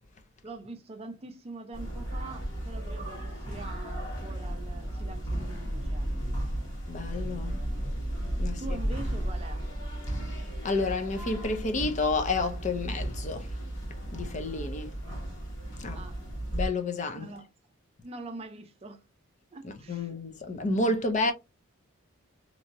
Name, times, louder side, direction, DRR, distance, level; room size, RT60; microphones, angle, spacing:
voice 1, 0.4-6.4 8.4-9.8 15.9-16.2 17.1-17.5 18.0-19.0 19.5-20.2, right 3 dB, 30° right, 0.5 m, -44 dB
sound 1, 1.7-16.7, right 1 dB, 55° left, 1.6 m, -34 dB
voice 2, 6.9-7.5 8.4-8.8 10.1-13.5 14.1-14.9 15.8-16.0 16.5-17.3 19.6-21.3, left 2 dB, 35° left, 0.5 m, -30 dB
3.0 x 2.7 x 2.5 m
head